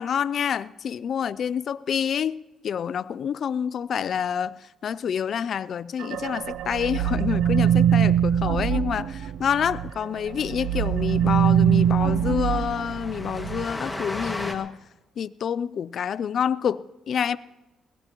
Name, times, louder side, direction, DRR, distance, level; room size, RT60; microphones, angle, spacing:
voice 1, 0.0-2.4 2.6-14.8 15.2-17.4, left 8 dB, 60° left, 0.4 m, -27 dB
sound 1, 6.0-9.9 10.3-13.6, right 9 dB, 85° right, 0.5 m, -23 dB
Train, 10.0-10.1 10.3-10.5 10.7-10.8 11.2-14.5, left 1 dB, 15° left, 1.9 m, -36 dB
23.5 x 17.5 x 3.0 m
cardioid pair, 90°, 0 cm